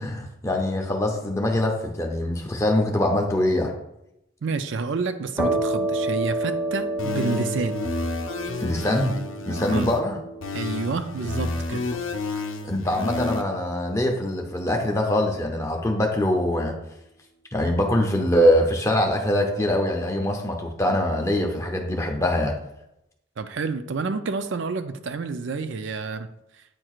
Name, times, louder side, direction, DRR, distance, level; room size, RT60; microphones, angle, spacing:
voice 1, 0.0-3.7 8.6-9.2 9.5-10.2 12.6-16.7 17.5-22.5, left 1 dB, 15° left, 2 dB, 0.7 m, -23 dB
voice 2, 4.4-7.9 9.7-9.9 10.5-11.9 23.4-26.3, right 4 dB, 65° right, 10 dB, 0.4 m, -29 dB
sound 1, 5.4-12.8, right 1 dB, 10° right, 1.2 m, -30 dB
sound 2, 7.0-10.0 10.4-13.4, left 3 dB, 75° left, 0.6 m, -31 dB
8.7 x 4.5 x 2.4 m, 0.84 s
head